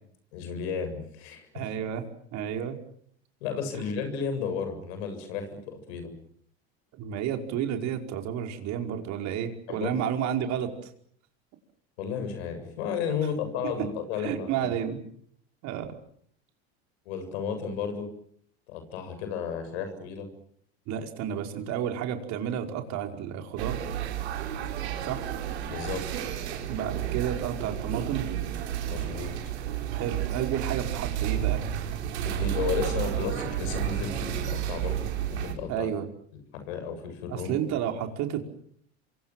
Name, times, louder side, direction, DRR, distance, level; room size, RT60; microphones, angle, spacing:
voice 1, 0.3-1.5 3.4-6.1 9.7-10.0 12.0-14.7 17.1-18.1 18.7-20.3 25.7-26.2 28.8-29.3 32.2-35.9 36.5-37.5, left 6 dB, 75° left, 8 dB, 7.7 m, -33 dB
voice 2, 1.5-2.0 2.3-2.8 7.0-10.9 13.6-13.7 14.2-15.0 15.6-15.9 20.9-23.8 25.0-25.3 26.7-28.3 29.9-31.6 35.7-36.1 37.3-38.4, right 9 dB, 55° right, 4 dB, 5.2 m, -31 dB
sound 1, 23.6-35.5, right 11 dB, 80° right, 5.5 m, -31 dB
27.5 x 24.0 x 7.6 m, 0.65 s
hypercardioid pair, 90°, 32 cm